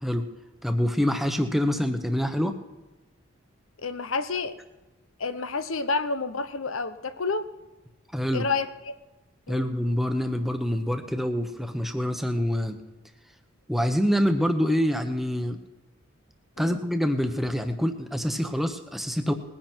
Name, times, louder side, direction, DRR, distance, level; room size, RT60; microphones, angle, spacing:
voice 1, 0.6-2.5 8.1-8.4 9.5-12.8 13.7-15.6 16.6-19.3, equal, ahead, 6 dB, 1.0 m, -26 dB
voice 2, 3.8-4.6 5.2-7.5 8.3-8.9 9.5-9.7 16.6-16.8, left 4 dB, 80° left, 12 dB, 1.0 m, -29 dB
20.0 x 10.0 x 4.5 m, 1.1 s
head